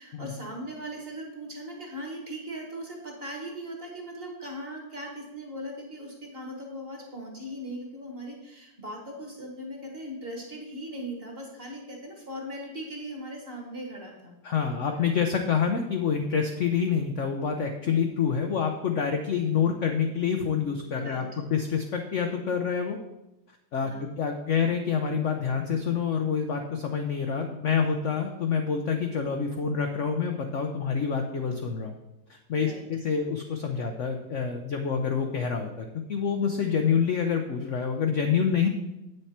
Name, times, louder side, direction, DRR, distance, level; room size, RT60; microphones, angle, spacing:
voice 1, 0.0-14.3 21.0-21.4 23.8-24.1 32.5-32.8, equal, 35° right, 1 dB, 1.6 m, -39 dB
voice 2, 14.4-23.0 23.7-32.0 32.3-38.7, left 6 dB, 60° left, 4 dB, 0.8 m, -27 dB
8.6 x 6.6 x 4.3 m, 0.94 s
omnidirectional pair, 2.0 m